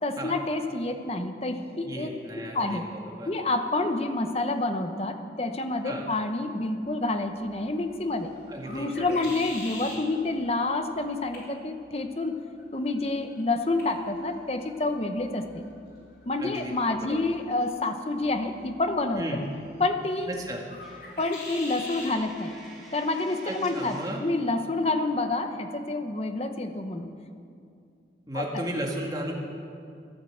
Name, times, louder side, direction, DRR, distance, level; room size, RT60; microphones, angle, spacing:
voice 1, 0.0-2.1 2.5-2.8 3.3-8.3 8.7-12.4 12.7-15.6 16.3-19.2 19.8-20.3 21.2-22.5 22.9-27.1 28.3-28.6, left 2 dB, 35° left, 7 dB, 0.9 m, -28 dB
voice 2, 1.8-3.3 5.8-6.0 8.5-9.2 16.4-16.7 17.0-17.2 19.2-19.4 20.3-20.6 23.5-24.2 28.3-29.3, right 1 dB, 20° right, -1 dB, 2.0 m, -34 dB
sound 1, 6.8-22.2, left 2 dB, 65° left, 3.7 m, -47 dB
Coin (dropping), 20.8-24.3, right 1 dB, ahead, 3.2 m, -50 dB
13.5 x 12.0 x 7.9 m, 2.5 s
head